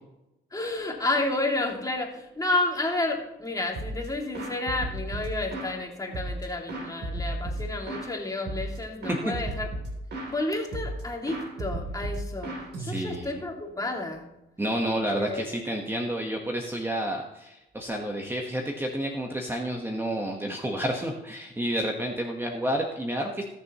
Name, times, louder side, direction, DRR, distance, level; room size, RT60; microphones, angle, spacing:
voice 1, 0.5-9.7 10.3-14.3 15.1-15.4, left 2 dB, 15° left, 1 dB, 2.5 m, -31 dB
sound 1, 3.7-4.1 4.3-5.8 6.1-8.1 8.5-8.8 9.0-10.4 10.7-11.0 11.3-13.4, right 1 dB, 60° right, 3.2 m, -34 dB
voice 2, 12.8-13.4 14.6-23.4, right 1 dB, 10° right, 1 dB, 1.3 m, -30 dB
20.0 x 6.9 x 3.0 m, 0.93 s
cardioid pair, 90°, 20 cm